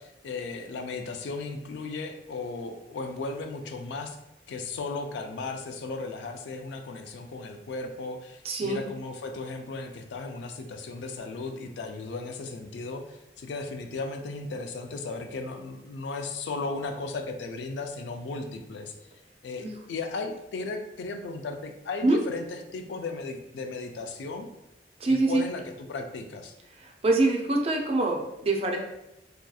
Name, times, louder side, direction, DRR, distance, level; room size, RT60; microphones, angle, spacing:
voice 1, 0.0-4.2 4.5-18.9 19.4-24.5 25.1-26.5, left 3 dB, 80° left, 5 dB, 0.3 m, -36 dB
voice 2, 8.4-8.8 19.6-19.7 22.0-22.2 25.0-25.4 26.8-28.8, right 2 dB, 35° right, 2 dB, 0.4 m, -24 dB
2.7 x 2.3 x 2.3 m, 0.87 s
head